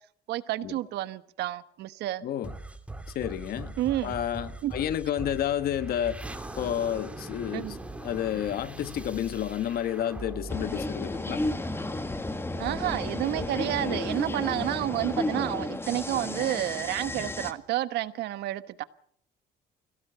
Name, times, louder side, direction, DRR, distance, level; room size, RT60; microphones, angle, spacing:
voice 1, 0.3-2.2 3.8-4.1 4.6-4.7 7.5-7.8 12.6-18.8, right 14 dB, 80° right, 1.2 m, -30 dB
voice 2, 2.2-2.5 3.1-3.8 4.0-6.2 6.5-7.8 8.0-11.4 13.8-14.0 14.5-14.6, left 10 dB, 65° left, 1.4 m, -30 dB
sound 1, 2.4-11.8, right 2 dB, 5° right, 2.4 m, -41 dB
sound 2, 10.5-17.5, left 2 dB, 15° left, 1.8 m, -32 dB
23.5 x 17.0 x 6.8 m
cardioid pair, 110°, 17 cm